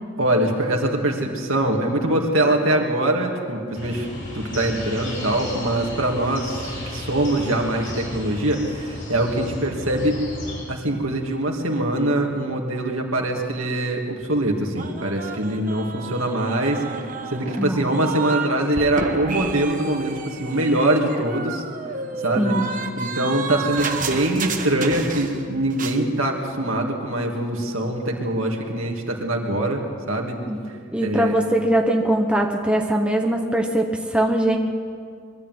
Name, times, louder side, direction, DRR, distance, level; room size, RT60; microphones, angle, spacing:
voice 1, 0.2-4.1 4.3-10.2 10.7-21.6 22.2-22.6 23.0-30.4 31.0-31.3, right 1 dB, 75° right, 1 dB, 2.9 m, -23 dB
sound 1, 3.7-10.6, left 1 dB, 60° left, 7.3 m, -34 dB
sound 2, 14.8-18.5 18.8-25.5 25.7-26.0, right 4 dB, 40° right, 1.4 m, -31 dB
voice 2, 17.6-17.9 22.4-22.7 30.5-30.6 30.9-34.6, right 1 dB, 5° right, 1 dB, 1.2 m, -21 dB
22.5 x 13.5 x 9.5 m, 2.3 s
head